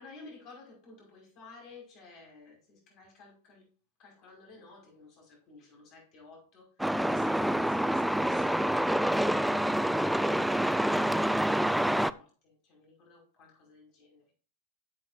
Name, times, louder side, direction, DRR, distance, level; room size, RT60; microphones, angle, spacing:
voice 1, 0.0-3.7 4.0-9.4 11.3-14.3, left 3 dB, 40° left, 5.6 m, -54 dB
Truck, 6.8-12.1, right 1 dB, ahead, 0.4 m, -27 dB
11.5 x 7.7 x 2.7 m
figure-of-eight pair, 95°, 0 cm